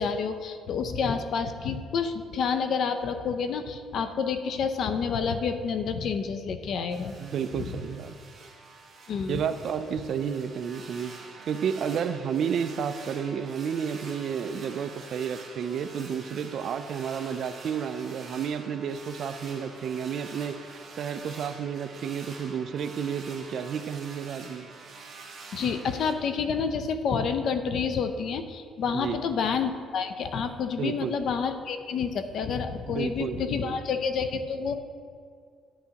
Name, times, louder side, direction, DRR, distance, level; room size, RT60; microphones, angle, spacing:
voice 1, 0.0-7.2 7.6-7.8 9.1-9.4 25.5-34.8, left 6 dB, 60° left, 8 dB, 0.6 m, -29 dB
sound 1, 6.9-26.1, right 4 dB, 40° right, 1.5 m, -46 dB
voice 2, 7.2-8.1 9.3-11.1 11.5-24.7 28.9-29.3 30.8-31.2 32.9-33.8, right 7 dB, 55° right, 10 dB, 0.4 m, -31 dB
10.5 x 9.3 x 2.9 m, 2.2 s
cardioid pair, 130°, 0 cm